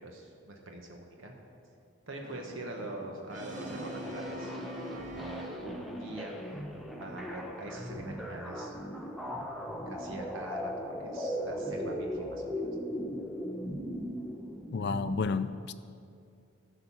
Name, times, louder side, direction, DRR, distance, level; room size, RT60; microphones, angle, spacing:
voice 1, 0.0-1.3 2.1-4.6 5.0-6.6 6.9-8.7 9.9-12.6, right 1 dB, 70° right, 1 dB, 1.3 m, -43 dB
Brass instrument, 2.2-6.0, right 1 dB, 40° right, 1.7 m, -44 dB
sound 1, 3.6-15.2, equal, ahead, 0.7 m, -38 dB
voice 2, 14.7-15.7, left 4 dB, 55° left, 10 dB, 0.4 m, -31 dB
12.0 x 6.5 x 7.4 m, 2.4 s
head